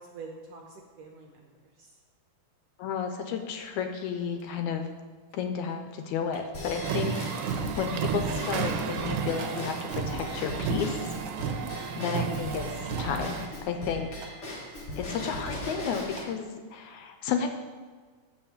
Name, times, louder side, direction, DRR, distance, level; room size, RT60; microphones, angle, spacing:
voice 1, 0.0-2.0 11.7-12.1, right 4 dB, 70° right, 1 dB, 1.5 m, -47 dB
voice 2, 2.8-4.9 5.3-11.1 12.0-14.3 15.0-17.5, left 7 dB, 80° left, 6 dB, 1.9 m, -32 dB
sound 1, 3.2-3.3 3.6-8.3 9.4-10.0 10.6-10.7 11.2-12.2 12.9-15.2 15.4-16.3, right 4 dB, 55° right, 1.6 m, -49 dB
Drum kit / Drum / Bell, 6.5-16.2, left 1 dB, 55° left, 0.7 m, -39 dB
sound 2, 6.8-13.5, right 6 dB, 85° right, 2.2 m, -32 dB
7.5 x 5.5 x 7.1 m, 1.5 s
omnidirectional pair, 3.6 m